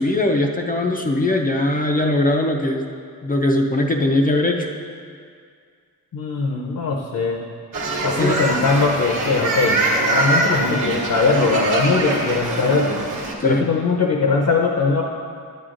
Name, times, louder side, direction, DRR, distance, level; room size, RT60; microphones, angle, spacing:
voice 1, 0.0-2.9 3.2-4.7 8.2-8.4 13.4-13.6, left 1 dB, 25° left, 2 dB, 0.4 m, -20 dB
voice 2, 6.1-7.4 8.0-13.0 13.4-15.0, left 4 dB, 60° left, 0 dB, 0.7 m, -20 dB
sound 1, 7.7-13.3, right 2 dB, 55° right, 1.1 m, -23 dB
9.5 x 9.4 x 2.5 m, 2.2 s
wide cardioid pair, 165°, 36 cm